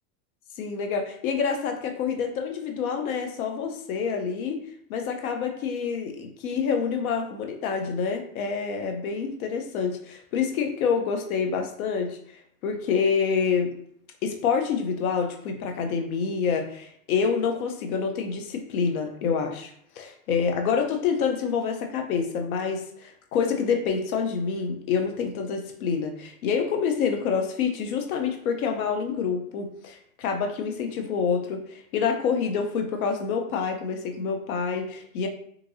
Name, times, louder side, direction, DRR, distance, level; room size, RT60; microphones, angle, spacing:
voice 1, 0.6-12.2 12.6-13.8 14.2-35.3, left 6 dB, 80° left, 4 dB, 0.8 m, -27 dB
3.6 x 3.0 x 2.6 m, 0.65 s
supercardioid pair, 125°, 42 cm